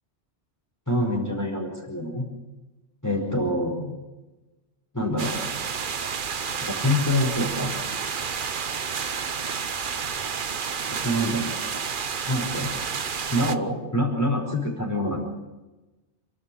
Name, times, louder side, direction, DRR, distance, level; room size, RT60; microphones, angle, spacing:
voice 1, 0.9-2.2 3.0-4.0 4.9-5.4 6.6-7.8 11.0-11.5 12.3-12.7 13.3-15.3, left 1 dB, 15° left, -2 dB, 5.0 m, -26 dB
sound 1, 5.2-13.6, right 6 dB, 50° right, 1.0 m, -30 dB
28.5 x 12.0 x 8.7 m, 1.1 s
omnidirectional pair, 1.2 m